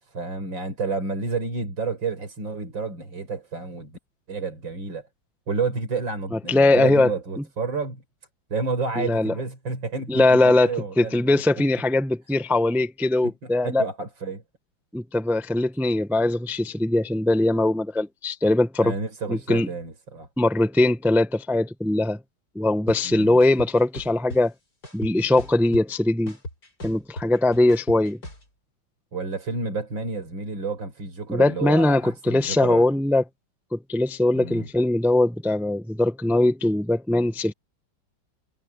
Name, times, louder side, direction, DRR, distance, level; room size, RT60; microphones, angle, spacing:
voice 1, 0.0-4.0 4.3-5.1 5.5-8.0 8.5-11.4 13.2-13.3 13.6-14.4 18.8-20.3 23.0-23.4 29.1-32.9 34.3-34.7, right 4 dB, 75° right, 5.4 m, -30 dB
voice 2, 6.5-7.1 9.0-9.3 10.1-10.7 11.0-13.8 14.9-18.9 19.3-19.7 20.4-22.2 22.5-24.5 24.9-26.4 26.8-28.2 31.3-33.2 33.7-37.5, left 2 dB, ahead, 0.4 m, -21 dB
sound 1, 22.9-23.0 23.4-24.4 24.8-26.0 26.3-28.4, left 1 dB, 55° left, 7.2 m, -37 dB
omnidirectional pair, 2.1 m